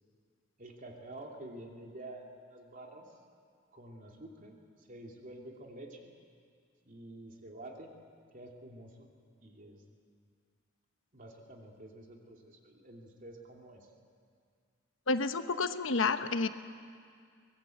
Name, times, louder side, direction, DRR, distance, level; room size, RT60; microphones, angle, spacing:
voice 1, 0.6-3.2 3.7-6.1 6.8-7.9 8.3-9.1 9.4-9.8 11.1-13.9, right 1 dB, 45° right, 1 dB, 2.9 m, -49 dB
voice 2, 15.1-16.5, left 4 dB, 80° left, 9 dB, 1.0 m, -30 dB
23.5 x 20.0 x 7.9 m, 2.2 s
head